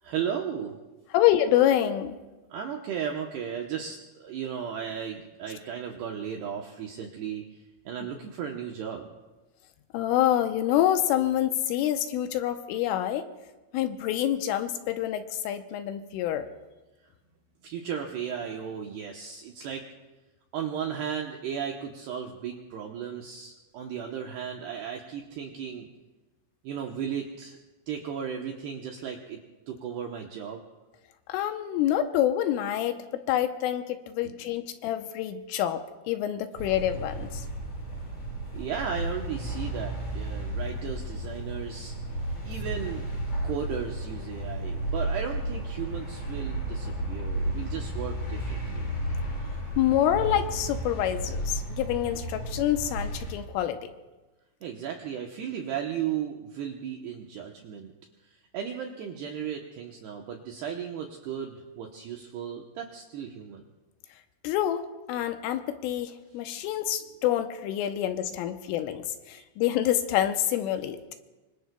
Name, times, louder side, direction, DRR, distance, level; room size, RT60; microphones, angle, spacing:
voice 1, 0.0-0.8 2.5-9.1 17.6-19.8 20.5-25.9 26.6-27.6 27.9-29.4 29.7-30.6 34.2-34.4 38.5-42.0 42.5-43.1 43.4-48.9 54.6-57.9 58.2-63.6 69.3-69.4, right 8 dB, 80° right, 1 dB, 2.4 m, -35 dB
voice 2, 1.1-2.2 9.9-13.3 13.7-16.5 31.3-35.8 36.1-37.4 49.8-53.9 64.4-71.0, left 11 dB, 80° left, 7 dB, 3.1 m, -27 dB
sound 1, 36.6-53.3, right 1 dB, 35° left, 7.7 m, -33 dB
25.5 x 25.0 x 2.2 m, 1.1 s
omnidirectional pair, 6.0 m